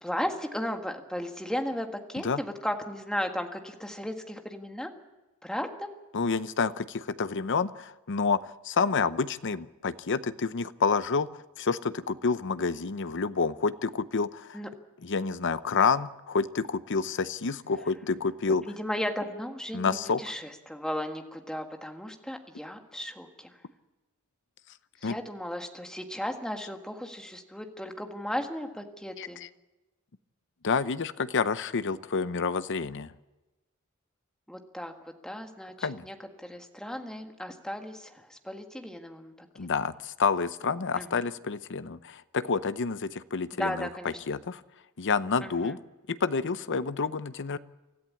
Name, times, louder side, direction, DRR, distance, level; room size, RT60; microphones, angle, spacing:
voice 1, 0.0-4.9 5.4-5.9 14.5-14.7 18.7-23.5 25.0-29.4 34.5-34.9 35.2-36.1 36.4-39.5 40.9-41.2 43.6-44.2 45.4-45.8, equal, 5° left, 4 dB, 1.7 m, -35 dB
voice 2, 6.1-8.4 8.6-11.3 11.6-14.6 15.0-18.7 19.7-20.2 25.0-25.2 29.2-29.5 30.6-33.1 35.8-36.0 39.6-44.6 45.0-45.8 46.1-47.6, left 5 dB, 60° left, 14 dB, 0.7 m, -29 dB
25.0 x 14.0 x 8.6 m, 1.1 s
head